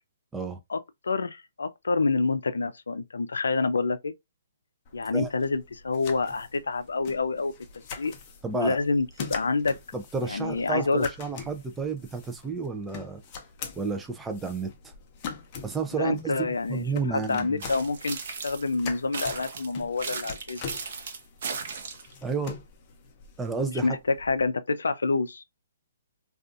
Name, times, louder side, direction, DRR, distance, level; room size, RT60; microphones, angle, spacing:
voice 1, 1.0-4.1 4.9-7.5 8.0-8.1 8.5-9.8 10.2-11.1 16.0-18.2 18.4-20.6 23.8-25.4, left 3 dB, 85° left, 0.4 m, -27 dB
sound 1, 4.8-24.5, left 6 dB, 35° left, 0.6 m, -44 dB
voice 2, 8.4-8.8 9.9-13.2 13.8-14.9 15.6-17.6 22.2-22.6 23.4-24.0, right 4 dB, 10° right, 0.4 m, -31 dB
sound 2, 17.6-18.7 19.1-22.1, right 5 dB, 60° right, 0.7 m, -36 dB
2.4 x 2.3 x 2.4 m
hypercardioid pair, 145°, 0 cm